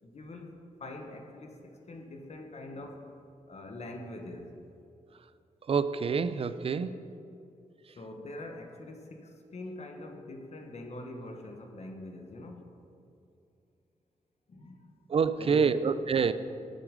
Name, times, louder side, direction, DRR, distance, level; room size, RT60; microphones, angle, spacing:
voice 1, 0.0-3.2 3.5-4.6 8.0-12.7 14.5-14.9 15.4-15.8, left 1 dB, 55° left, 4 dB, 1.2 m, -44 dB
voice 2, 5.7-6.9 15.1-16.3, right 5 dB, 45° right, 13 dB, 0.4 m, -26 dB
8.5 x 7.8 x 5.1 m, 2.6 s
cardioid pair, 75°, 14 cm